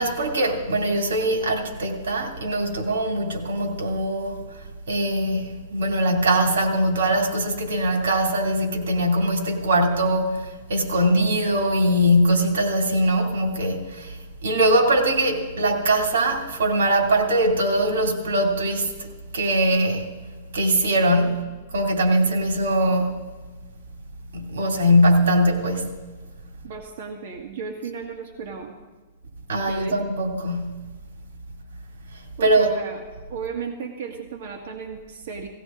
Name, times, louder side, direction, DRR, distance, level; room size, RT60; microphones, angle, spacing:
voice 1, 0.0-4.4 4.9-20.1 20.5-23.2 24.3-26.0 29.5-30.9 32.1-32.7, right 1 dB, 85° right, 2.8 m, -22 dB
voice 2, 26.6-28.7 29.7-29.9 32.4-33.0 33.3-35.5, right 5 dB, 55° right, 1.7 m, -34 dB
18.0 x 16.5 x 3.8 m
hypercardioid pair, 155°, 0 cm